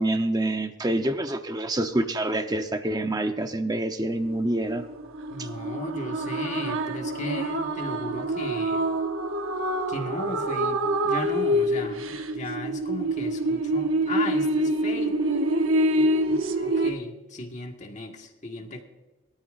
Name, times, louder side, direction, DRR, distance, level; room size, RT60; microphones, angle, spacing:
voice 1, 0.0-4.8 5.4-5.5, right 1 dB, 20° right, 7 dB, 0.8 m, -26 dB
sound 1, 4.2-16.9, right 1 dB, 75° right, 1.0 m, -26 dB
voice 2, 5.3-8.8 9.9-15.2 15.9-18.8, left 1 dB, 35° left, 2 dB, 1.7 m, -35 dB
22.5 x 13.0 x 2.6 m, 1.1 s
head